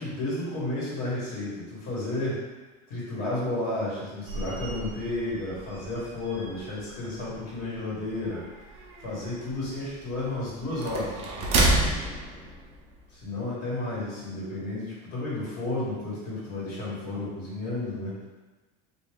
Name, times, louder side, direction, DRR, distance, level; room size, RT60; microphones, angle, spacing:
voice 1, 0.0-2.4 2.9-8.4 8.7-11.7 13.1-18.1, left 2 dB, 45° left, -7 dB, 1.4 m, -32 dB
sound 1, 4.3-13.2, right 2 dB, 30° right, 0.5 m, -31 dB
3.4 x 2.5 x 3.4 m, 1.2 s
cardioid pair, 175°, 20 cm